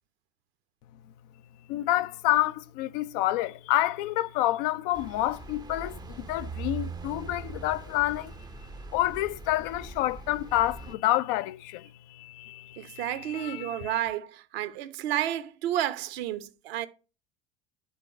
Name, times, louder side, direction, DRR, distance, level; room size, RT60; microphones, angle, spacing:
voice 1, 1.7-8.3 8.9-14.0, left 15 dB, 50° left, 0.5 m, -28 dB
sound 1, 4.9-11.0, right 4 dB, 10° right, 0.6 m, -41 dB
voice 2, 12.8-16.9, right 12 dB, 65° right, 1.0 m, -31 dB
11.0 x 3.8 x 4.5 m
figure-of-eight pair, 75°, 33 cm